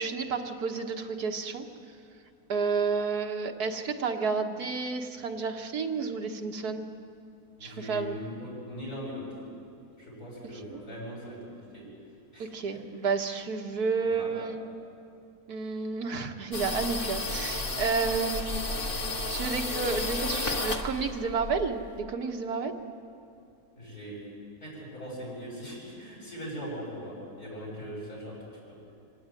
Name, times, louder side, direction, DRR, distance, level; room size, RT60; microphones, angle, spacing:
voice 1, 0.0-1.7 2.5-6.9 7.6-8.2 10.5-10.8 12.4-14.7 15.5-18.6 19.3-22.7, right 5 dB, 85° right, 3 dB, 1.9 m, -31 dB
voice 2, 7.6-9.4 10.0-11.4 11.7-11.8 12.3-12.8 14.0-14.4 23.8-24.2 24.6-28.4 28.7-28.8, equal, 75° left, -6 dB, 8.3 m, -40 dB
sound 1, 16.5-22.0, left 2 dB, 35° left, 1.6 m, -32 dB
25.0 x 17.5 x 9.2 m, 2.5 s
omnidirectional pair, 1.6 m